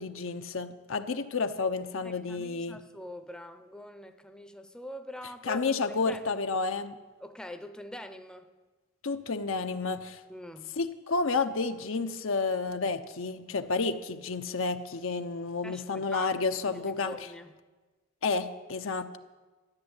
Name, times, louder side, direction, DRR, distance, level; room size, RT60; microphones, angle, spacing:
voice 1, 0.0-2.8 5.4-7.0 9.0-10.2 10.7-17.2 18.2-19.2, left 4 dB, 70° left, 8 dB, 0.8 m, -31 dB
voice 2, 2.0-5.6 6.1-6.2 7.2-8.5 10.3-10.7 15.6-16.3 16.7-17.5, left 1 dB, 5° left, 8 dB, 0.7 m, -44 dB
13.5 x 10.5 x 8.1 m, 1.3 s
head